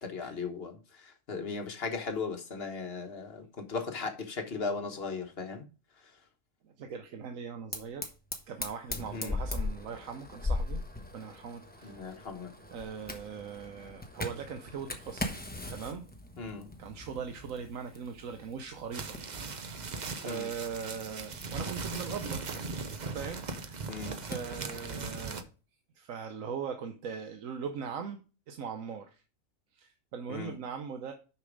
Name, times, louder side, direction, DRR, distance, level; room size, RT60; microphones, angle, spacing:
voice 1, 0.0-5.6 9.1-9.4 11.8-12.5 16.4-16.7 20.2-20.5 23.9-24.2 30.3-30.6, left 4 dB, 50° left, 1.3 m, -37 dB
voice 2, 6.6-8.1 8.5-10.8 11.1-12.0 12.7-15.3 15.7-16.1 16.8-22.4 23.1-23.9 24.2-25.4 25.9-29.2 29.7-31.1, right 6 dB, 75° right, 1.2 m, -40 dB
Fire, 7.7-25.1, left 2 dB, 10° left, 0.9 m, -41 dB
sound 1, 18.9-25.4, right 4 dB, 40° right, 0.7 m, -39 dB
6.5 x 5.9 x 5.1 m
omnidirectional pair, 1.4 m